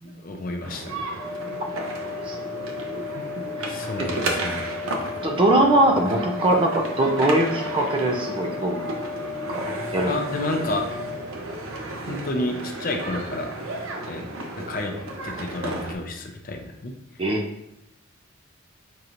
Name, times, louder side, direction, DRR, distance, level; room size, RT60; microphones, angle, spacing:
voice 1, 0.0-1.0 3.7-4.7 10.1-10.9 12.1-13.5 14.1-14.2 14.6-14.9 15.2-16.9, left 2 dB, 45° left, 3 dB, 0.5 m, -30 dB
sound 1, 0.6-15.9, right 2 dB, 85° right, 0.7 m, -33 dB
sound 2, 1.2-11.2, left 6 dB, 70° left, 0.9 m, -35 dB
voice 2, 5.2-8.8 9.5-9.6 9.9-10.1 17.2-17.4, right 1 dB, 25° right, 2 dB, 0.5 m, -21 dB
5.4 x 2.9 x 2.5 m, 0.84 s
head